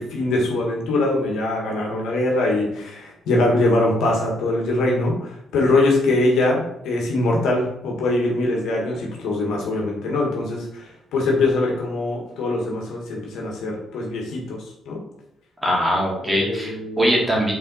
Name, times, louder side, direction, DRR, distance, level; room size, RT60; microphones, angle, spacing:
voice 1, 0.0-15.0 16.2-17.0, left 2 dB, 80° left, -1 dB, 1.7 m, -22 dB
voice 2, 15.6-17.5, equal, 10° right, -4 dB, 2.3 m, -21 dB
5.5 x 4.3 x 4.1 m, 0.77 s
cardioid pair, 90°, 0 cm